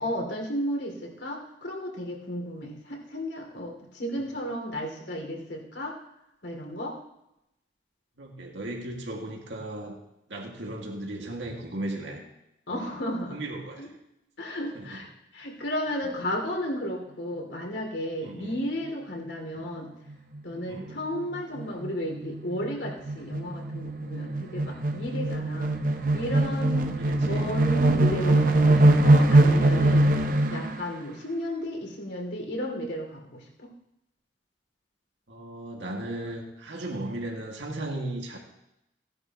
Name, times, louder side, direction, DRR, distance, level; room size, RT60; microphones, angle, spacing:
voice 1, 0.0-5.9 6.4-6.9 12.7-13.4 13.8-13.9 14.4-15.1 15.3-19.9 20.4-25.7 26.1-26.9 27.2-30.1 30.5-33.7, equal, 75° left, 0 dB, 2.8 m, -33 dB
voice 2, 8.2-10.0 10.3-12.2 12.7-13.9 14.7-15.0 16.0-16.2 18.2-18.6 19.5-19.7 20.7-21.0 27.0-27.5 35.3-38.4, right 1 dB, 80° right, 0 dB, 2.1 m, -36 dB
sound 1, 20.1-20.4 20.8-20.9 21.1-30.8, right 2 dB, 45° right, 0.8 m, -22 dB
16.5 x 10.5 x 3.0 m, 0.86 s
head